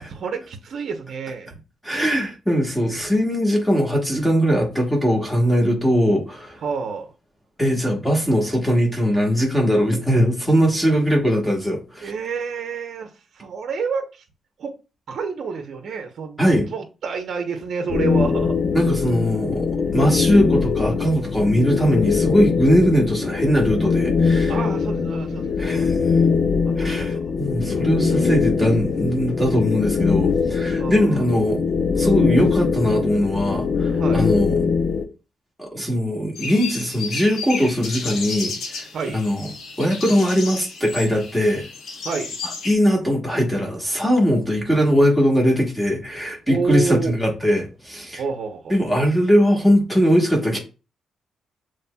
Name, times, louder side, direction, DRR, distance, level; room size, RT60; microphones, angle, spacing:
voice 1, 0.0-1.6 6.6-7.1 12.0-13.1 13.3-14.2 14.6-14.7 15.1-18.5 18.9-19.0 24.5-25.9 26.6-27.2 30.8-31.2 34.0-34.3 38.9-39.3 42.0-42.4 46.5-47.1 48.2-48.7, right 5 dB, 55° right, 0.8 m, -29 dB
voice 2, 1.8-6.6 7.6-12.1 16.4-16.7 18.7-24.6 25.6-26.0 26.8-31.6 31.9-34.6 35.6-38.9 39.1-39.5 39.8-41.7 42.6-48.2 48.7-50.6, equal, 5° left, 1.3 m, -20 dB
sound 1, 17.9-35.0, left 5 dB, 35° left, 0.6 m, -22 dB
sound 2, 36.4-42.7, left 4 dB, 70° left, 1.1 m, -32 dB
7.1 x 3.2 x 2.3 m
wide cardioid pair, 170°, 0 cm